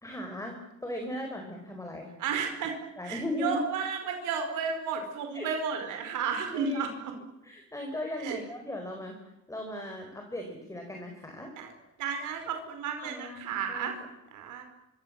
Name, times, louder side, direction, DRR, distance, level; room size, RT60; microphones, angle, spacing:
voice 1, 0.0-2.1 3.0-3.6 5.3-5.5 6.5-6.8 7.4-9.2 9.5-11.5 13.0-13.9, left 1 dB, 10° left, 3 dB, 4.9 m, -37 dB
voice 2, 2.2-2.7 3.0-6.9 8.2-8.4 11.5-13.9 14.3-14.6, right 6 dB, 90° right, 5 dB, 4.9 m, -33 dB
26.0 x 25.5 x 7.8 m, 0.92 s
cardioid pair, 130°, 30 cm